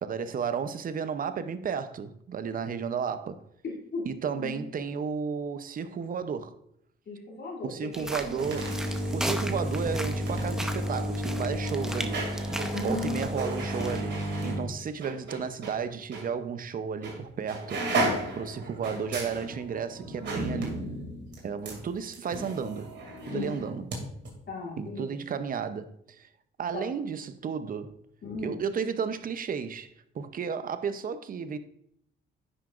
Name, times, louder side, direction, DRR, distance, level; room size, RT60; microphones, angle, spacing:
voice 1, 0.0-3.4 4.0-6.5 7.6-8.8 9.1-12.3 12.8-17.8 18.3-20.8 21.4-22.9 23.2-23.8 24.8-26.3 26.6-27.9 28.4-29.9 30.1-31.6, right 6 dB, 45° right, 0.6 m, -33 dB
voice 2, 3.6-4.0 4.4-4.6 7.1-8.1 12.6-13.3 23.3-23.6 24.5-25.2 26.7-26.8 28.2-28.5, left 3 dB, 60° left, 2.6 m, -36 dB
sound 1, 7.9-14.0, equal, 5° right, 0.7 m, -37 dB
sound 2, 8.0-15.8 16.1-16.3 17.0-17.2 17.5-24.0 24.2-24.3, right 1 dB, 65° right, 2.5 m, -32 dB
9.8 x 5.8 x 2.5 m
cardioid pair, 90°, 20 cm